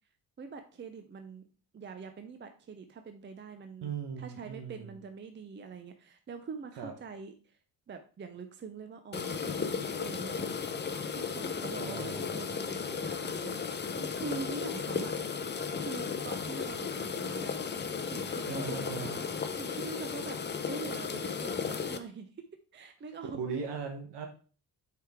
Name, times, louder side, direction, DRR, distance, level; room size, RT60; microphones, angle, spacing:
voice 1, 0.4-1.5 1.7-7.6 7.9-10.6 11.1-15.2 15.8-17.8 18.1-20.4 20.7-22.3 22.7-23.6, right 4 dB, 30° right, 7 dB, 0.5 m, -44 dB
voice 2, 3.8-4.9 6.8-6.9 11.8-12.4 18.5-19.3 23.3-24.3, right 6 dB, 85° right, 3 dB, 1.1 m, -38 dB
sound 1, 9.1-22.0, left 6 dB, 25° left, 0.6 m, -35 dB
8.0 x 4.8 x 3.5 m, 0.38 s
cardioid pair, 125°, 41 cm